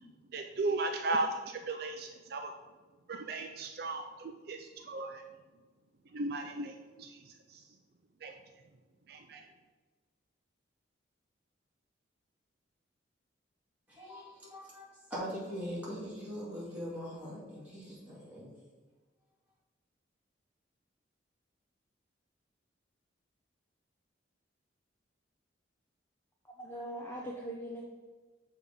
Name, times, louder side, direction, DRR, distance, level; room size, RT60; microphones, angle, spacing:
voice 1, 0.3-2.5 3.1-5.2 6.1-7.6 8.2-8.3 9.1-9.4, right 2 dB, 50° right, 5 dB, 0.4 m, -36 dB
voice 2, 13.9-18.6, equal, 10° right, -8 dB, 2.1 m, -42 dB
voice 3, 26.6-27.9, right 1 dB, 10° left, -2 dB, 0.5 m, -41 dB
6.6 x 3.5 x 5.3 m, 1.3 s
head